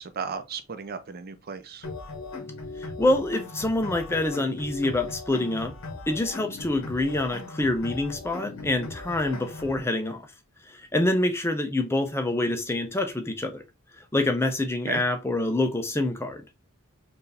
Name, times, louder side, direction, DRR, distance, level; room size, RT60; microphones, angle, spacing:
voice 1, 0.0-1.9 14.9-15.0, right 5 dB, 45° right, 0.5 m, -35 dB
sound 1, 1.8-9.8, left 3 dB, 65° left, 1.2 m, -39 dB
voice 2, 2.8-5.7 6.1-10.2 10.7-13.6 14.1-16.4, left 2 dB, 10° left, 0.5 m, -26 dB
4.6 x 2.6 x 3.2 m
head